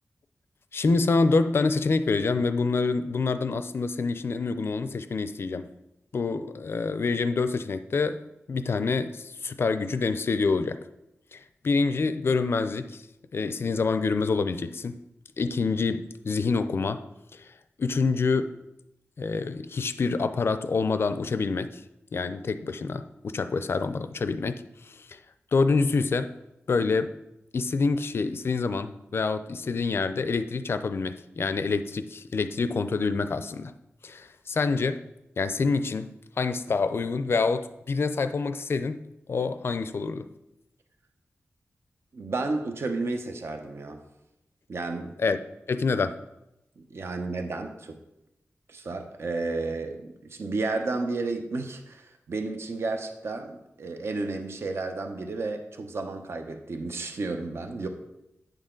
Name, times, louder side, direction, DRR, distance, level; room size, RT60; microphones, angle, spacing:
voice 1, 0.7-5.7 6.1-8.2 8.5-10.8 11.3-13.0 13.3-15.0 15.4-17.1 17.3-17.5 17.8-18.6 19.2-21.8 22.1-25.2 25.5-26.3 26.7-27.1 27.5-33.7 34.0-35.0 35.4-36.1 36.4-39.0 39.3-40.3 45.2-45.4 45.7-46.2, left 4 dB, 55° left, 11 dB, 0.5 m, -26 dB
voice 2, 42.1-44.0 44.7-45.1 46.8-48.0 48.7-57.9, right 3 dB, 60° right, 6 dB, 0.8 m, -32 dB
8.9 x 6.4 x 3.8 m, 0.89 s
wide cardioid pair, 125°, 5 cm